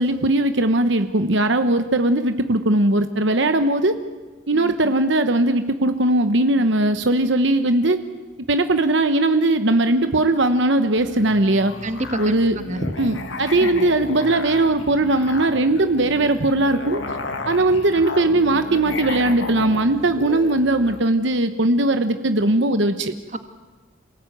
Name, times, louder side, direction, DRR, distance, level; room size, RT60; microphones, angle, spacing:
voice 1, 0.0-4.0 4.5-8.0 8.5-11.7 12.2-12.6 13.0-17.0 17.4-23.1, right 2 dB, 60° right, 9 dB, 1.1 m, -19 dB
voice 2, 4.5-4.9 11.8-12.9 13.6-13.7 23.3-23.4, right 1 dB, 35° right, 8 dB, 1.6 m, -29 dB
Musical instrument, 10.9-21.1, left 2 dB, 65° left, 2.3 m, -33 dB
28.0 x 19.0 x 9.3 m, 1.3 s
head